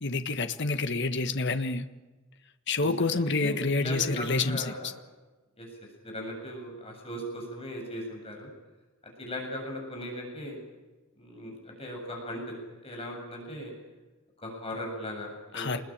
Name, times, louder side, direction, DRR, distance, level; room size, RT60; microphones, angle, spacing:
voice 1, 0.0-1.9 2.7-4.9 15.5-15.8, left 3 dB, 60° left, 8 dB, 1.5 m, -28 dB
voice 2, 3.4-4.9 5.6-5.7 6.0-8.5 9.2-10.6 11.2-12.5 12.8-13.7 14.4-15.8, equal, 30° left, 1 dB, 7.6 m, -38 dB
28.0 x 21.0 x 8.8 m, 1.2 s
head